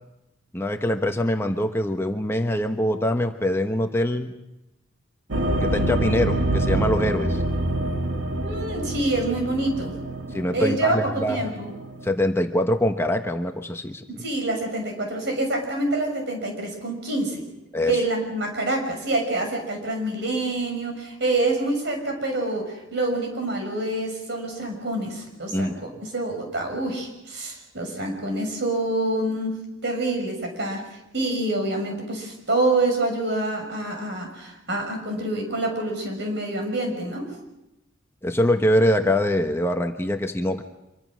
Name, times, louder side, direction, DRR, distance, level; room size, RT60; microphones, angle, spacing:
voice 1, 0.5-4.3 5.6-7.4 10.3-11.5 12.0-14.0 17.7-18.0 25.5-25.8 38.2-40.6, left 1 dB, 10° left, 5 dB, 1.0 m, -23 dB
sound 1, 5.3-12.1, right 1 dB, 85° right, 2.4 m, -26 dB
voice 2, 8.4-9.9 10.5-11.7 14.1-17.4 17.9-30.8 31.1-37.3, right 2 dB, 60° right, 3 dB, 6.4 m, -26 dB
25.5 x 23.5 x 6.3 m, 0.96 s
head